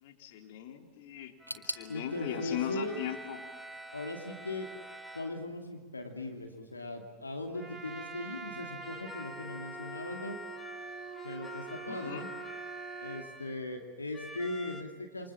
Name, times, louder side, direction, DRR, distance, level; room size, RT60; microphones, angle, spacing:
voice 1, 0.0-3.4 11.9-12.3, left 10 dB, 50° left, 4 dB, 3.5 m, -39 dB
sound 1, 1.4-5.4 8.8-13.7 14.1-14.8, left 1 dB, 10° left, 2.1 m, -47 dB
sound 2, 1.5-4.3 4.6-5.4 5.7-5.8 6.6-6.7, equal, 85° right, 1.8 m, -45 dB
voice 2, 1.9-3.0 3.9-4.7 5.1-10.4 11.2-12.2 13.0-15.3, left 2 dB, 80° left, 3 dB, 2.7 m, -39 dB
Trumpet, 7.5-13.3, right 5 dB, 20° right, 2.7 m, -45 dB
28.5 x 26.5 x 7.3 m, 1.4 s
figure-of-eight pair, 90°, 0 cm